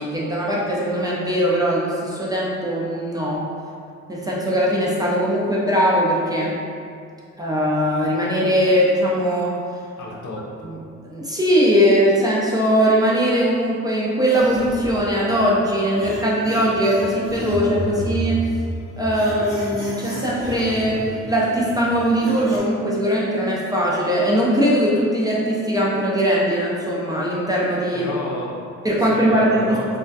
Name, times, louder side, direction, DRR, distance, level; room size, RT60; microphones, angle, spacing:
voice 1, 0.0-3.4 4.1-6.6 7.4-9.6 10.6-10.8 11.0-18.5 19.0-28.1 28.8-29.8, equal, 15° right, -5 dB, 0.3 m, -20 dB
voice 2, 10.0-10.7 27.9-28.6 28.9-29.9, left 1 dB, 75° left, -3 dB, 0.6 m, -31 dB
sound 1, 14.2-22.6, equal, 10° left, 0.7 m, -32 dB
2.2 x 2.2 x 2.6 m, 2.4 s
cardioid pair, 90°, 30 cm